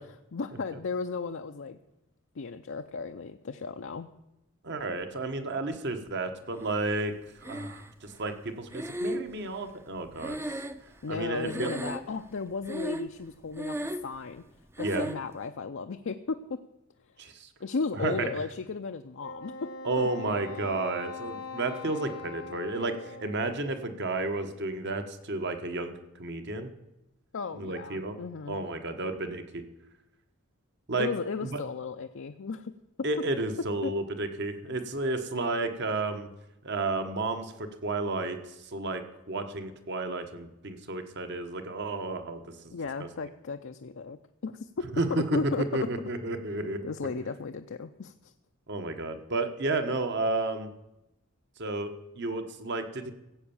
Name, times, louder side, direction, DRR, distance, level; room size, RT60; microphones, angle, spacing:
voice 1, 0.3-1.8 2.4-4.1 11.0-13.8 14.0-14.4 14.8-16.6 17.6-19.5 20.0-20.3 27.3-28.6 31.0-32.7 33.8-33.9 42.7-44.2 44.4-44.7 45.3-45.6 46.8-48.3, left 4 dB, 60° left, 6 dB, 0.5 m, -35 dB
voice 2, 4.6-10.4 11.1-11.7 14.8-15.1 17.2-17.5 17.9-18.3 19.8-26.7 27.5-28.2 28.5-29.6 30.9-31.1 31.4-31.6 33.0-36.3 36.6-39.0 39.3-42.7 43.0-43.1 44.9-45.2 45.7-46.8 48.7-50.7 51.6-51.9 52.2-53.1, right 2 dB, 55° right, 7 dB, 1.3 m, -32 dB
Breathing, 7.4-8.1 8.7-11.2 11.4-12.3 12.6-13.2 13.5-14.2 14.8-15.3, right 1 dB, 10° right, 0.6 m, -35 dB
Wind instrument woodwind instrument, 19.2-23.8, left 4 dB, 80° left, 1.1 m, -42 dB
16.0 x 8.1 x 7.1 m, 0.94 s
head